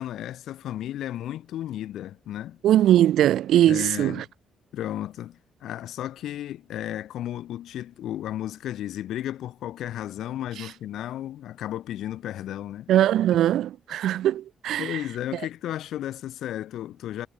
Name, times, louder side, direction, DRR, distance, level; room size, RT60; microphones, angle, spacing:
voice 1, 0.0-2.6 3.7-4.2 4.7-12.9 14.8-17.3, left 12 dB, 80° left, 6.4 m, -34 dB
voice 2, 2.6-4.2 10.6-10.7 12.9-15.0, right 12 dB, 75° right, 2.3 m, -21 dB
cardioid pair, 90°, 0 cm